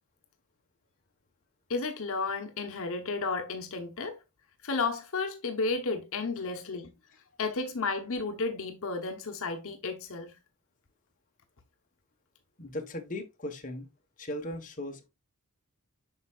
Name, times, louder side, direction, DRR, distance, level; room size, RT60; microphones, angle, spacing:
voice 1, 1.7-4.2 4.6-6.9 7.4-10.3, left 3 dB, 65° left, 1.0 m, -32 dB
voice 2, 12.6-13.9 14.2-15.1, left 1 dB, 35° left, 1.2 m, -38 dB
8.0 x 5.6 x 2.4 m
head